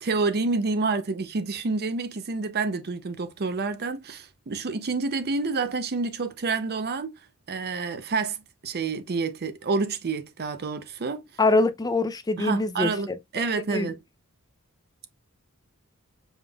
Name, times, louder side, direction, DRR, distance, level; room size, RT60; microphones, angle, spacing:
voice 1, 0.0-7.2 7.5-11.2 12.4-14.0, right 4 dB, 45° right, 0.6 m, -28 dB
voice 2, 11.4-13.9, left 2 dB, 15° left, 0.5 m, -25 dB
5.2 x 3.6 x 2.3 m
head